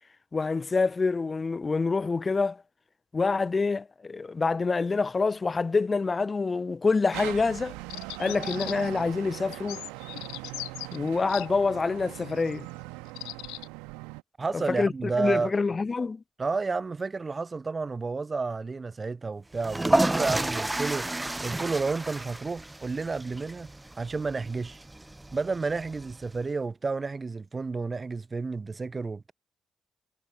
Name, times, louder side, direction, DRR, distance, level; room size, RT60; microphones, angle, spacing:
voice 1, 0.3-2.6 3.1-7.8 8.2-9.8 10.9-12.7 14.5-14.9 15.2-16.2, left 4 dB, 30° left, 1.1 m, -26 dB
sound 1, 7.1-14.2, right 27 dB, 70° right, 2.1 m, -40 dB
sound 2, 7.9-9.0 9.5-11.5 12.3-12.5 13.1-13.7, left 24 dB, 70° left, 0.5 m, -39 dB
voice 2, 14.4-15.5 16.4-21.2 21.4-23.7 24.0-24.8 25.3-29.3, right 4 dB, 30° right, 0.6 m, -31 dB
sound 3, 19.5-26.4, right 2 dB, 15° right, 1.0 m, -31 dB
figure-of-eight pair, 40°, 0 cm